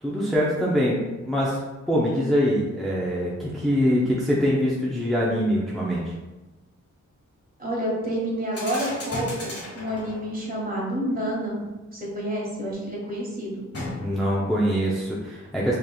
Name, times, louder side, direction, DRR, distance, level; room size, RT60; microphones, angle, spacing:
voice 1, 0.0-1.6 1.9-6.1 14.0-15.7, equal, ahead, -6 dB, 0.6 m, -24 dB
voice 2, 7.6-11.6 11.9-13.6, equal, 30° right, -4 dB, 1.3 m, -29 dB
sound 1, 8.5-10.4 13.7-14.4, left 2 dB, 55° left, 1.3 m, -35 dB
5.1 x 3.0 x 2.3 m, 1.1 s
wide cardioid pair, 125°, 29 cm